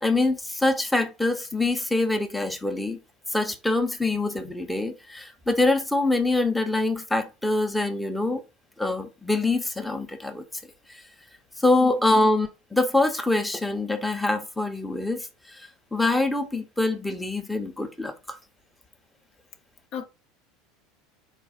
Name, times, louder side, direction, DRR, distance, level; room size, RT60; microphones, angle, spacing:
voice 1, 0.0-3.0 3.3-8.4 8.8-10.4 10.9-11.0 11.6-18.4, left 2 dB, 5° left, 0.8 m, -25 dB
voice 2, 11.8-12.3 19.9-20.1, left 7 dB, 50° left, 0.8 m, -36 dB
4.1 x 2.5 x 4.0 m
hypercardioid pair, 80°, 0 cm